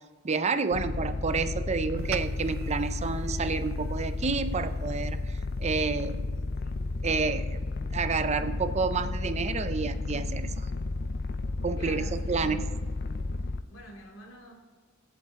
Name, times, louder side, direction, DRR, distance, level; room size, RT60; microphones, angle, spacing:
voice 1, 0.2-5.3 5.6-6.2 7.0-7.6 7.9-10.7 11.6-12.6, right 4 dB, 35° right, 11 dB, 0.5 m, -29 dB
sound 1, 0.7-13.6, left 2 dB, 55° left, 0.5 m, -32 dB
sound 2, 2.0-6.6, right 7 dB, 80° right, 0.5 m, -45 dB
voice 2, 11.8-12.7 13.7-14.5, equal, 90° left, 0 dB, 2.7 m, -46 dB
23.0 x 8.6 x 3.7 m, 1.5 s
head